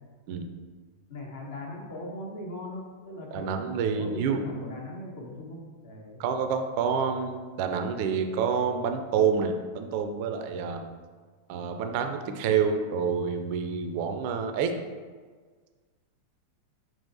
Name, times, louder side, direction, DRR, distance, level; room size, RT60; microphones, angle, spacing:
voice 1, 1.1-3.5 4.0-6.2, left 1 dB, 55° left, -1 dB, 1.0 m, -39 dB
voice 2, 3.3-4.4 6.2-10.9 11.5-14.7, right 6 dB, 45° right, 6 dB, 0.4 m, -28 dB
6.2 x 3.0 x 2.7 m, 1.5 s
figure-of-eight pair, 90°, 0 cm